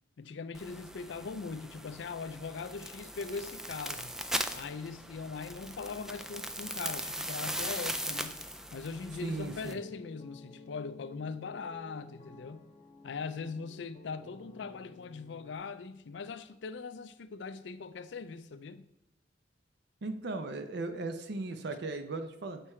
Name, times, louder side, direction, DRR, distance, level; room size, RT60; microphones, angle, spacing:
voice 1, 0.2-4.2 4.5-8.4 8.7-12.6 13.0-18.8, left 4 dB, 70° left, 0.4 m, -41 dB
sound 1, 0.5-9.7, equal, 5° right, 0.3 m, -39 dB
voice 2, 9.2-9.8 20.0-22.6, right 3 dB, 65° right, 0.6 m, -37 dB
sound 2, 9.4-15.6, left 3 dB, 35° left, 0.7 m, -53 dB
6.7 x 4.6 x 4.3 m
head